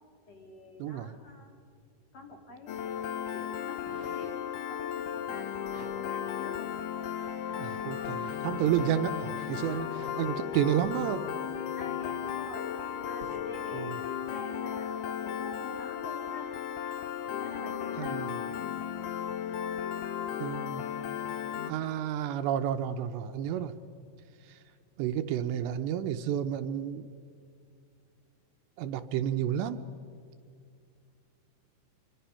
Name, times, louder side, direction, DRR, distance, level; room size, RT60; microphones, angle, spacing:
voice 1, 0.3-1.5 2.1-4.4 4.7-5.5 5.9-6.7 9.7-9.9 11.8-12.7 13.0-16.5 17.2-18.3, left 2 dB, 40° left, 1 dB, 3.0 m, -46 dB
voice 2, 0.8-1.2 7.5-11.2 13.7-14.0 18.0-18.3 20.4-20.9 21.7-23.7 24.5-24.6 25.0-27.1 28.8-29.8, right 10 dB, 80° right, 9 dB, 2.9 m, -31 dB
Piano, 2.7-21.7, left 9 dB, 80° left, 1.9 m, -35 dB
sound 1, 3.7-4.6 5.7-6.0 6.6-6.7 7.3-10.2 10.8-11.1 12.1-12.2 13.1-13.5 14.2-14.3, right 6 dB, 60° right, 1.5 m, -52 dB
27.0 x 24.5 x 5.7 m, 2.3 s
omnidirectional pair, 5.3 m